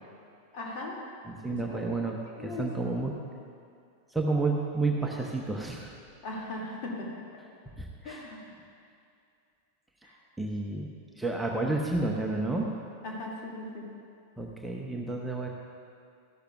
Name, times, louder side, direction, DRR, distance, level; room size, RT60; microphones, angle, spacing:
voice 1, 0.5-0.9 1.5-1.9 2.4-2.7 6.2-7.1 8.0-8.4 10.0-10.2 13.0-13.9, left 2 dB, 45° left, -3 dB, 2.3 m, -38 dB
voice 2, 1.2-3.1 4.1-5.9 7.7-8.2 10.4-12.7 14.4-15.5, right 3 dB, 5° right, -1 dB, 0.9 m, -31 dB
14.0 x 11.5 x 2.4 m, 2.4 s
figure-of-eight pair, 90°, 0 cm